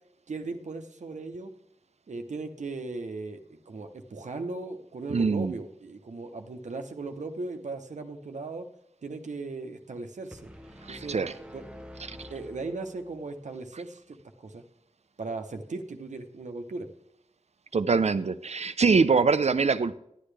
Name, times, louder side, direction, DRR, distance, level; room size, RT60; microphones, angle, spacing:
voice 1, 0.3-1.5 2.1-3.4 3.7-8.7 9.0-10.5 10.9-11.2 11.5-11.6 12.3-14.6 15.2-16.9, right 3 dB, 85° right, 5 dB, 0.9 m, -37 dB
voice 2, 5.1-5.5 10.9-11.3 12.1-12.2 17.7-19.9, right 4 dB, 65° right, 13 dB, 0.5 m, -24 dB
sound 1, 10.3-13.4, equal, 10° right, 0.9 m, -47 dB
11.0 x 10.0 x 3.3 m, 0.76 s
wide cardioid pair, 45°, 12 cm